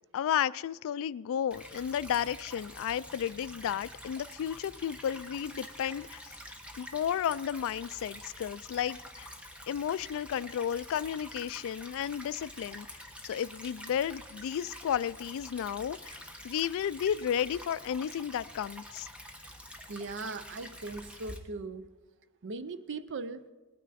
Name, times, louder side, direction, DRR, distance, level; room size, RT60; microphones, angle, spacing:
voice 1, 0.1-6.3 6.8-9.3 9.7-12.9 13.2-16.2 16.4-19.1, left 9 dB, 65° left, 19 dB, 0.3 m, -33 dB
Stream / Trickle dribble, 1.5-21.4, equal, 5° right, 1.1 m, -47 dB
voice 2, 19.9-21.9 22.4-23.5, right 3 dB, 55° right, 13 dB, 0.6 m, -39 dB
19.0 x 9.3 x 4.2 m, 1.3 s
head